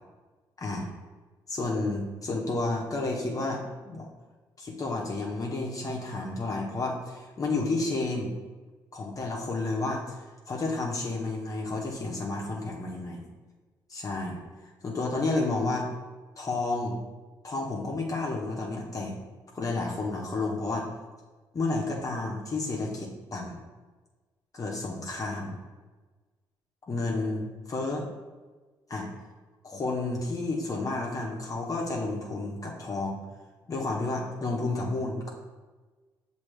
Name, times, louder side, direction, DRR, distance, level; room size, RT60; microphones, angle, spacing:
voice 1, 0.6-0.9 1.5-4.1 4.6-8.3 8.9-13.2 13.9-14.4 14.8-15.9 16.4-17.0 17.4-19.1 19.5-20.9 21.5-23.6 24.5-25.6 26.9-28.1 28.9-29.1 29.6-33.2 33.7-35.3, left 2 dB, 40° left, -1 dB, 0.9 m, -31 dB
5.9 x 2.7 x 3.3 m, 1.3 s
supercardioid pair, 60°, 9 cm